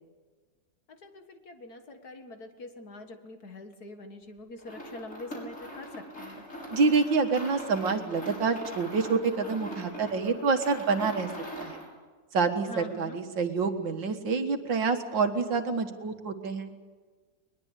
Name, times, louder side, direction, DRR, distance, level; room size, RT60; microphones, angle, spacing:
voice 1, 0.9-6.4 12.6-13.2, left 2 dB, 55° left, 6 dB, 2.3 m, -44 dB
sound 1, 4.6-11.9, equal, 40° left, 6.7 m, -42 dB
voice 2, 6.7-11.3 11.6-11.8 12.3-16.7, right 4 dB, 80° right, 7 dB, 2.3 m, -27 dB
21.5 x 21.5 x 8.2 m, 1.4 s
omnidirectional pair, 2.0 m